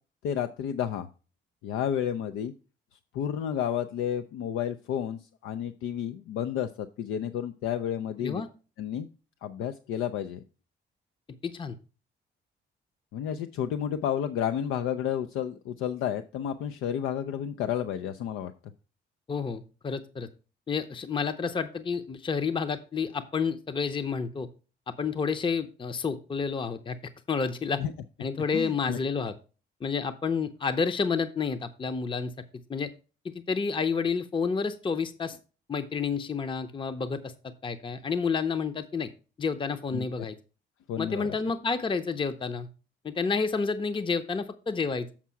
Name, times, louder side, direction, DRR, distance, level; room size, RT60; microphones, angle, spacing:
voice 1, 0.2-1.1 1.6-2.5 3.1-8.4 8.8-9.1 9.4-10.4 13.1-18.5 27.8-27.9 28.5-29.0 39.9-40.1 40.9-41.4, left 9 dB, 90° left, 9 dB, 0.5 m, -31 dB
voice 2, 11.4-11.7 19.3-20.3 20.7-24.5 25.0-27.0 27.3-27.8 28.2-29.3 29.8-32.3 32.7-32.9 33.5-35.4 35.7-39.1 39.4-40.4 41.0-42.7 43.0-45.1, left 5 dB, 25° left, 10 dB, 0.6 m, -30 dB
7.3 x 4.7 x 5.7 m, 0.35 s
cardioid pair, 90°, 20 cm